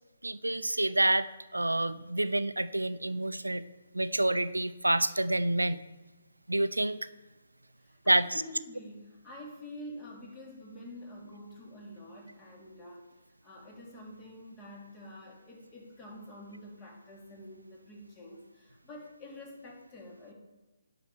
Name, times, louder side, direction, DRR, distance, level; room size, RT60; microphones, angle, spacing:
voice 1, 0.2-1.3 1.5-3.6 3.9-5.8 6.5-7.0 8.1-8.4, right 1 dB, 90° right, 14 dB, 0.5 m, -28 dB
voice 2, 7.8-13.1 13.4-20.3, left 1 dB, 20° left, -2 dB, 3.1 m, -47 dB
10.5 x 5.8 x 7.2 m, 1.2 s
figure-of-eight pair, 140°, 0 cm